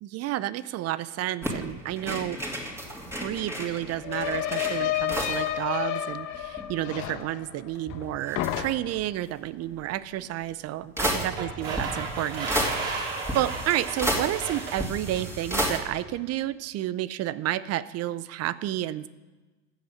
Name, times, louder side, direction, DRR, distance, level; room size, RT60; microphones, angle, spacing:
voice 1, 0.0-2.4 3.2-12.5 13.3-19.1, right 14 dB, 40° right, 17 dB, 0.6 m, -31 dB
sound 1, 1.4-5.5 5.8-5.9 6.1-7.2 7.7-9.0 10.2-10.3 11.0-15.8, equal, 5° right, 2.6 m, -32 dB
sound 2, 2.5-2.6 2.8-8.1 8.4-9.1, left 12 dB, 50° left, 1.2 m, -31 dB
sound 3, 11.2-15.3, right 4 dB, 65° right, 4.6 m, -34 dB
14.0 x 7.9 x 6.4 m, 1.2 s
hypercardioid pair, 90°, 39 cm